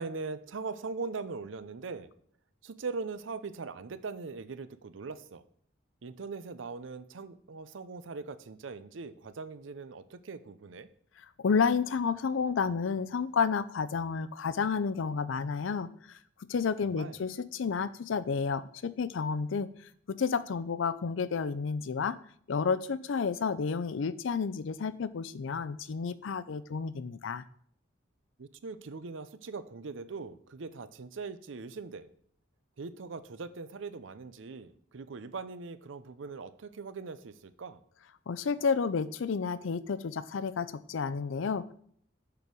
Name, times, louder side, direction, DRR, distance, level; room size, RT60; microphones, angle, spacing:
voice 1, 0.0-2.1 2.6-5.4 6.0-10.9 16.8-17.2 28.4-32.1 32.8-37.8, right 4 dB, 80° right, 14 dB, 0.6 m, -41 dB
voice 2, 11.4-15.9 16.5-19.7 20.1-22.2 22.5-27.4 38.3-41.7, left 5 dB, 85° left, 16 dB, 0.5 m, -31 dB
6.7 x 5.2 x 6.1 m, 0.64 s
head